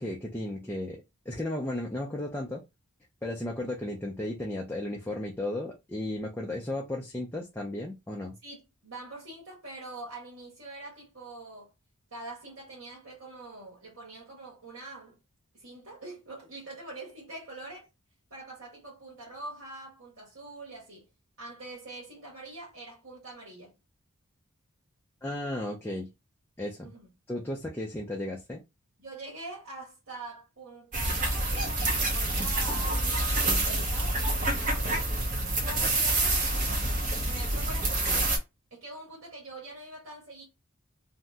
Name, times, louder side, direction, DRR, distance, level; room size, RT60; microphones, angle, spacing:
voice 1, 0.0-2.6 3.2-8.4 25.2-26.1 26.6-26.9 27.3-28.6, left 1 dB, 10° left, 0.4 m, -34 dB
voice 2, 8.4-11.7 12.1-15.2 15.5-17.9 18.3-21.1 21.4-23.7 26.8-27.1 29.0-34.9 35.6-36.8 37.2-38.4 38.7-40.4, right 2 dB, 70° right, 1.2 m, -44 dB
sound 1, 30.9-38.4, right 2 dB, 35° right, 0.6 m, -27 dB
2.7 x 2.0 x 3.4 m
head